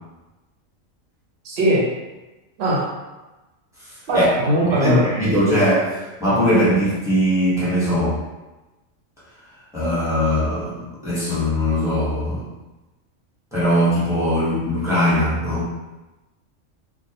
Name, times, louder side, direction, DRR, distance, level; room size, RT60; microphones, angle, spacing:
voice 1, 1.4-1.9 2.6-2.8 4.1-5.1, right 1 dB, 60° right, -4 dB, 0.9 m, -19 dB
voice 2, 4.8-8.2 9.7-12.4 13.5-15.7, equal, 5° right, -10 dB, 0.7 m, -20 dB
2.3 x 2.2 x 2.7 m, 1.1 s
omnidirectional pair, 1.4 m